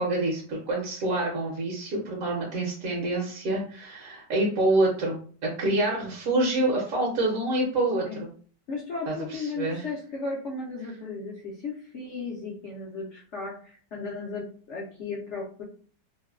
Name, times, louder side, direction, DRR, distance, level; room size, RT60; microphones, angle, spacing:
voice 1, 0.0-8.3 9.1-9.9, right 2 dB, 60° right, -3 dB, 1.0 m, -27 dB
voice 2, 8.7-15.6, left 3 dB, 65° left, -4 dB, 0.7 m, -35 dB
3.1 x 2.1 x 2.3 m, 0.44 s
omnidirectional pair, 1.9 m